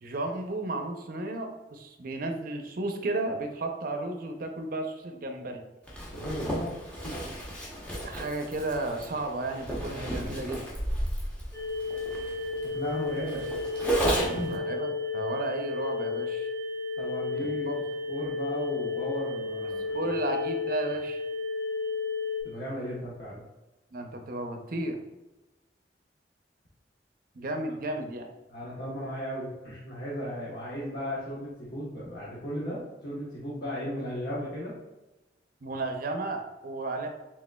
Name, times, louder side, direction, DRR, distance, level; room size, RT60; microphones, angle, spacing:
voice 1, 0.0-5.6 8.0-10.6 14.3-16.5 17.4-17.7 19.9-21.2 23.9-25.0 27.3-28.3 35.6-37.1, right 2 dB, 50° right, 4 dB, 0.5 m, -33 dB
Zipper (clothing), 5.9-14.5, right 1 dB, 10° left, 0.8 m, -33 dB
voice 2, 6.1-7.2 12.6-13.5 14.0-14.5 17.0-17.7 18.1-20.0 22.4-23.4 28.5-34.8, equal, 60° left, -7 dB, 1.0 m, -36 dB
sound 1, 11.5-22.4, left 4 dB, 80° left, 1.4 m, -32 dB
5.0 x 3.6 x 2.2 m, 1.1 s
head